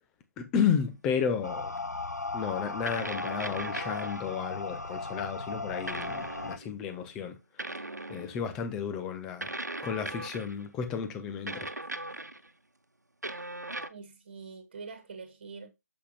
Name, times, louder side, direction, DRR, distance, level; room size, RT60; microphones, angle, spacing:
voice 1, 0.4-1.7 2.3-7.7 8.1-9.5 9.8-11.7, left 7 dB, 5° left, 0.3 m, -32 dB
sound 1, 1.4-6.6, left 3 dB, 75° left, 0.6 m, -37 dB
sound 2, 1.8-1.9 2.9-4.3 5.9-6.7 7.6-8.5 9.4-10.6 11.5-12.5 13.2-13.9, right 2 dB, 80° right, 1.0 m, -38 dB
voice 2, 13.9-15.7, right 4 dB, 35° right, 1.6 m, -45 dB
8.3 x 6.9 x 2.3 m
figure-of-eight pair, 155°, 9 cm